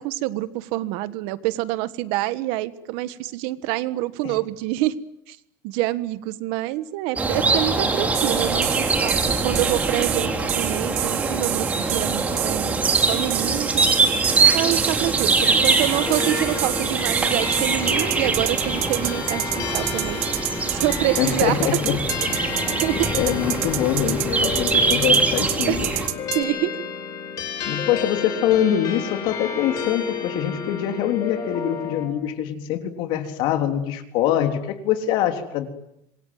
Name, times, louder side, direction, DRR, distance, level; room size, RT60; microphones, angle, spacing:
voice 1, 0.0-4.9 5.3-5.4 5.6-13.7 14.5-20.5 20.8-21.8 22.8-23.1 25.7-25.8 26.3-26.7, right 16 dB, 70° right, 15 dB, 1.5 m, -26 dB
sound 1, 7.2-26.1, right 3 dB, 15° right, 3.6 m, -23 dB
sound 2, 8.1-26.4, right 19 dB, 85° right, 1.8 m, -28 dB
sound 3, 15.7-32.1, left 5 dB, 40° left, 5.8 m, -32 dB
voice 2, 21.2-22.0 22.3-22.7 23.1-25.9 27.7-35.7, left 10 dB, 60° left, 7 dB, 3.4 m, -24 dB
27.0 x 22.5 x 9.5 m, 0.79 s
cardioid pair, 170°, 10 cm